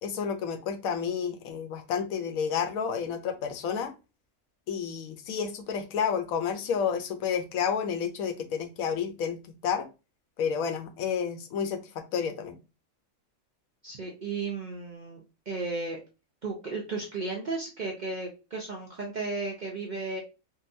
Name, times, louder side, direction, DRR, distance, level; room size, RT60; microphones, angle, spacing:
voice 1, 0.0-3.9 4.7-9.9 10.4-12.6, left 7 dB, 80° left, 7 dB, 1.0 m, -30 dB
voice 2, 13.8-15.2 15.5-16.0 16.4-20.2, right 3 dB, 55° right, -2 dB, 0.5 m, -34 dB
3.7 x 2.2 x 2.6 m, 0.29 s
omnidirectional pair, 1.4 m